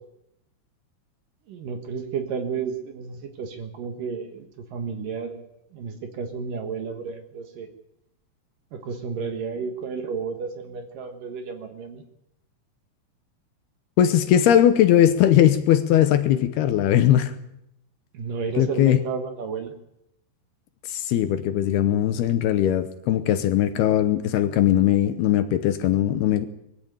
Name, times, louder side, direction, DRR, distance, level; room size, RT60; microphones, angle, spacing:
voice 1, 1.5-5.4 5.7-7.7 8.7-12.0 18.1-19.7, right 5 dB, 60° right, 6 dB, 2.7 m, -32 dB
voice 2, 14.0-17.3 18.6-19.0 20.9-26.5, left 11 dB, 75° left, 10 dB, 2.7 m, -19 dB
21.0 x 15.0 x 8.9 m, 0.80 s
omnidirectional pair, 5.1 m